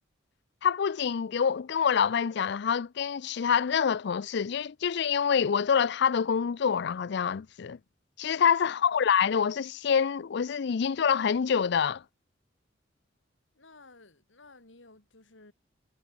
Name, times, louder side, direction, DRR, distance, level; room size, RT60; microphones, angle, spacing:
voice 1, 0.6-7.8 8.2-12.0, left 7 dB, 65° left, 0.4 m, -26 dB
voice 2, 13.5-15.5, left 2 dB, 90° left, 3.6 m, -55 dB
head